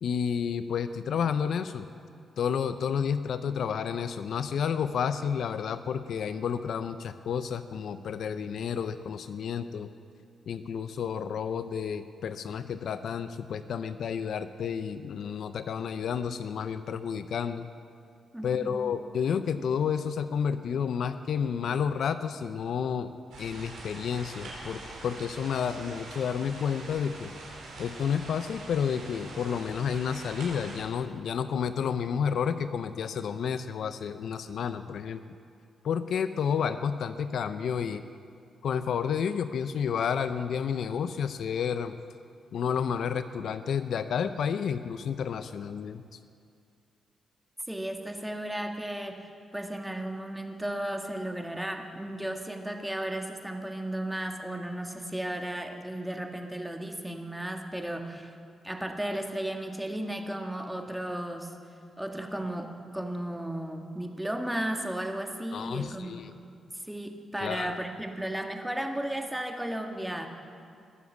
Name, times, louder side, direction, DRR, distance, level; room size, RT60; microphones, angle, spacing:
voice 1, 0.0-1.8 2.4-9.9 10.5-17.7 18.4-23.1 23.4-27.3 27.8-35.2 35.8-38.0 38.6-41.9 42.5-46.2 65.5-66.3 67.4-67.8, left 7 dB, 70° left, 11 dB, 0.5 m, -30 dB
voice 2, 18.3-18.8 47.7-49.3 49.5-58.3 58.6-61.5 62.0-66.2 66.7-70.3, right 1 dB, 5° right, 4 dB, 1.6 m, -34 dB
sound 1, 23.3-30.8, right 2 dB, 85° right, 4.3 m, -44 dB
20.5 x 7.3 x 7.1 m, 2.3 s
cardioid pair, 65°, 0 cm